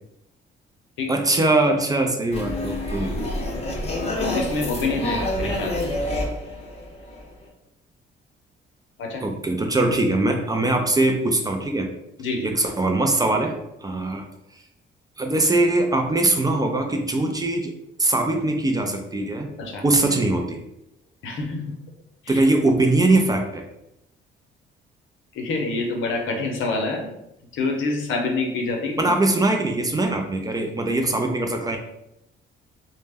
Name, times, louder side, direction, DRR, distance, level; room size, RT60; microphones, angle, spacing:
voice 1, 1.1-3.1 9.2-11.9 12.4-14.3 15.2-17.7 18.0-19.5 19.8-20.6 22.3-23.6 29.0-31.8, right 2 dB, 20° right, 3 dB, 0.3 m, -21 dB
sound 1, 2.3-7.5, left 1 dB, 30° left, 0.6 m, -28 dB
voice 2, 4.2-5.7 9.0-9.2 12.2-12.5 19.6-19.8 21.2-21.6 22.2-22.4 25.3-27.1 27.5-29.1, left 3 dB, 80° left, 2 dB, 0.6 m, -26 dB
2.1 x 2.0 x 3.3 m, 0.85 s
cardioid pair, 90°, 20 cm